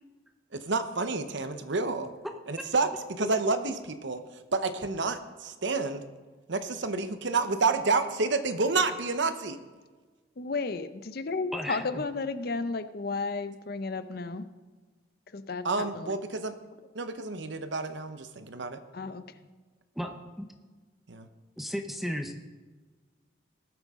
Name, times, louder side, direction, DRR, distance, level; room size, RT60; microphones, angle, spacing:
voice 1, 0.5-2.1 2.5-4.2 4.5-6.0 6.5-9.6 15.6-16.6 16.9-18.8 21.1-21.3, right 3 dB, 65° right, 10 dB, 0.9 m, -29 dB
voice 2, 10.4-14.5 15.3-16.2 18.9-19.3, left 3 dB, 50° left, 12 dB, 0.6 m, -33 dB
voice 3, 11.5-12.0 20.0-20.5 21.6-22.4, equal, ahead, 5 dB, 0.7 m, -34 dB
19.5 x 7.8 x 3.7 m, 1.3 s
head